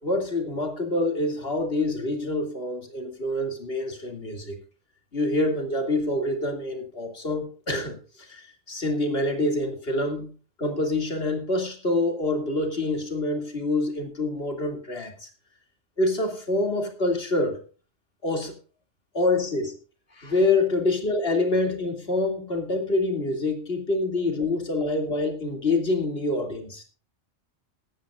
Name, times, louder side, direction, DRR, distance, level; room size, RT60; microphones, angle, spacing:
voice 1, 0.0-4.6 5.1-10.3 10.6-15.3 16.0-17.6 18.2-18.5 19.1-19.7 20.2-26.8, left 2 dB, 55° left, 4 dB, 3.0 m, -26 dB
16.5 x 13.5 x 2.5 m, 0.36 s
omnidirectional pair, 1.2 m